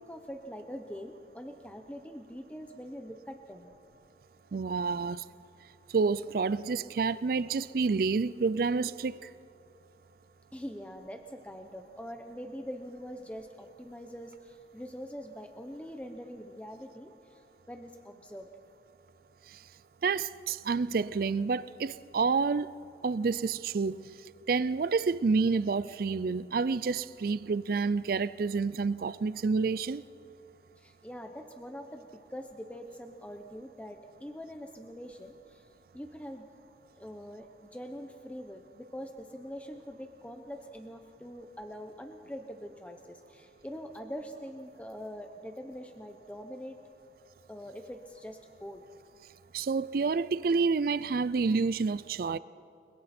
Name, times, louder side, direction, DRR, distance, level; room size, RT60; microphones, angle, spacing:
voice 1, 0.0-3.7 10.5-18.5 30.8-35.7 35.9-36.4 37.0-46.8 47.5-48.8, equal, 5° left, 0.8 m, -43 dB
voice 2, 4.5-5.2 5.9-9.3 20.0-22.7 23.0-24.0 24.5-30.0 49.5-52.4, right 4 dB, 50° right, 0.4 m, -29 dB
30.0 x 21.5 x 4.4 m
head